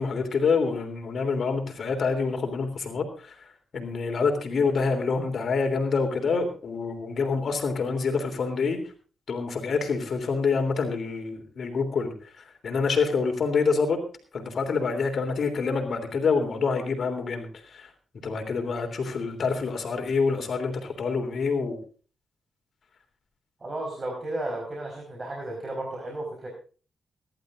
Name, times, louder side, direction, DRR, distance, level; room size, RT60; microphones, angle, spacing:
voice 1, 0.0-3.4 3.7-8.8 9.3-14.0 14.3-17.9 18.2-21.8, left 4 dB, 60° left, 5 dB, 3.2 m, -27 dB
voice 2, 23.6-26.5, right 1 dB, 35° right, 0 dB, 4.9 m, -33 dB
23.0 x 12.0 x 2.6 m, 0.39 s
cardioid pair, 70°, 0 cm